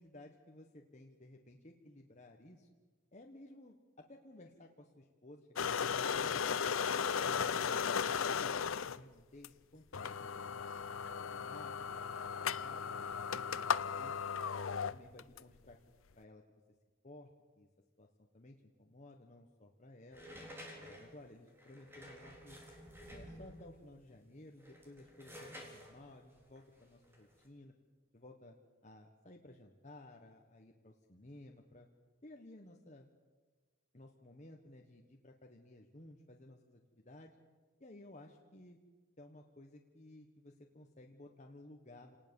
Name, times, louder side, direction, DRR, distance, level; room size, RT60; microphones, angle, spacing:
voice 1, 0.0-2.7 3.1-6.6 7.0-8.7 9.0-11.7 12.3-14.1 14.9-15.8 16.1-16.6 17.0-17.3 17.6-17.7 18.0-20.3 20.8-22.6 23.1-27.7 28.1-28.6 28.8-31.9 32.2-33.1 33.9-37.3 37.8-38.8 39.2-42.2, left 1 dB, 35° left, 1 dB, 1.4 m, -56 dB
sound 1, 5.6-9.0 9.4-9.5 9.9-15.4, left 6 dB, 85° left, 0.6 m, -36 dB
sound 2, 20.1-23.8 24.5-27.4, equal, 10° right, 3.8 m, -52 dB
28.0 x 19.0 x 7.2 m, 1.4 s
head